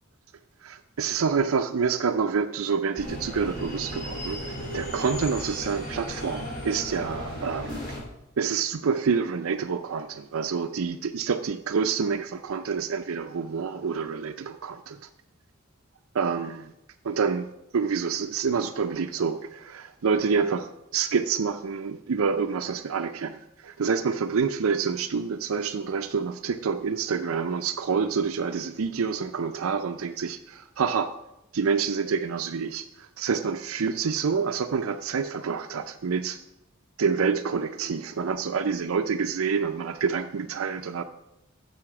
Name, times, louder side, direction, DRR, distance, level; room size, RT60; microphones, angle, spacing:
voice 1, 0.6-4.4 4.7-8.0 8.4-15.0 16.1-16.7 17.0-31.1 31.5-36.4 37.0-41.0, right 5 dB, 85° right, 5 dB, 0.5 m, -27 dB
sound 1, 3.0-8.0, equal, 40° left, 2.9 m, -35 dB
9.8 x 6.4 x 6.0 m, 0.85 s
head